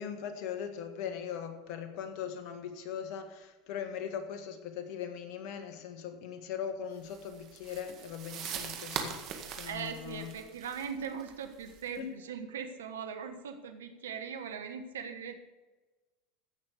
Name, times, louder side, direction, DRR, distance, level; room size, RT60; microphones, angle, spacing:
voice 1, 0.0-9.2 9.5-10.3 11.9-12.1, left 8 dB, 60° left, 1.7 m, -40 dB
sound 1, 7.1-12.0, right 8 dB, 50° right, 1.9 m, -42 dB
voice 2, 9.6-15.4, right 7 dB, 85° right, 1.2 m, -40 dB
15.5 x 6.4 x 5.1 m
hypercardioid pair, 90°, 0 cm